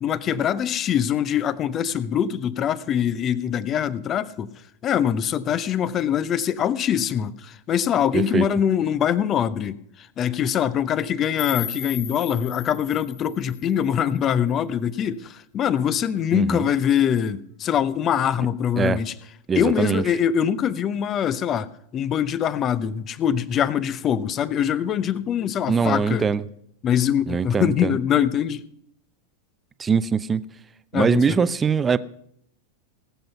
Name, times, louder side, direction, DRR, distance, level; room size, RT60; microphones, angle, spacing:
voice 1, 0.0-4.5 4.8-19.1 19.6-21.7 21.9-26.2 26.8-28.6 30.9-31.3, left 9 dB, 30° left, 0.7 m, -23 dB
voice 2, 8.1-8.4 16.3-16.7 18.8-19.0 19.5-20.0 25.7-26.4 27.3-28.0 29.8-30.4 30.9-32.0, right 6 dB, 20° right, 0.5 m, -22 dB
sound 1, 11.4-14.4, left 8 dB, 65° left, 2.8 m, -36 dB
19.0 x 7.8 x 5.6 m
figure-of-eight pair, 90°, 0 cm